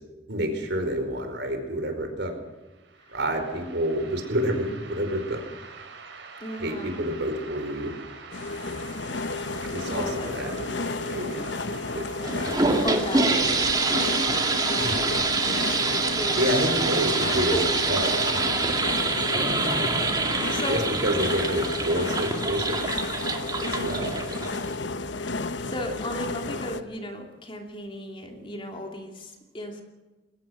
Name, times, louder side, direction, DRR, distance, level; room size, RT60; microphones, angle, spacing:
voice 1, 0.3-2.3 3.1-5.4 6.6-7.9 9.5-11.5 11.9-12.0 12.3-12.7 14.8-15.0 16.4-17.6 17.8-18.7 20.7-22.8 23.6-24.5, equal, 60° right, 5 dB, 4.8 m, -29 dB
sound 1, 2.6-19.0, right 4 dB, 75° right, 4.8 m, -46 dB
voice 2, 6.4-7.1 9.7-10.3 12.8-15.9 16.1-16.6 17.3-17.6 18.9-19.2 19.9-21.0 23.6-24.1 25.1-29.8, equal, 25° left, 3 dB, 2.8 m, -36 dB
sound 2, 8.3-26.8, left 3 dB, 70° left, 1.0 m, -32 dB
sound 3, 12.2-24.8, right 3 dB, 20° right, 2.1 m, -26 dB
22.0 x 18.0 x 6.5 m, 1.2 s
head